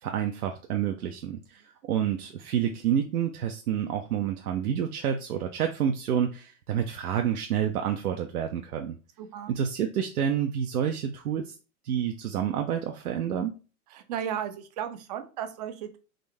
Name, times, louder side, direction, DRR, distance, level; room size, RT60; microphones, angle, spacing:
voice 1, 0.0-9.0 9.5-11.5 11.8-13.5, right 9 dB, 85° right, 4 dB, 0.6 m, -29 dB
voice 2, 9.2-9.5 13.9-16.0, right 9 dB, 30° right, 9 dB, 0.3 m, -35 dB
3.8 x 2.6 x 3.3 m, 0.35 s
hypercardioid pair, 125°, 43 cm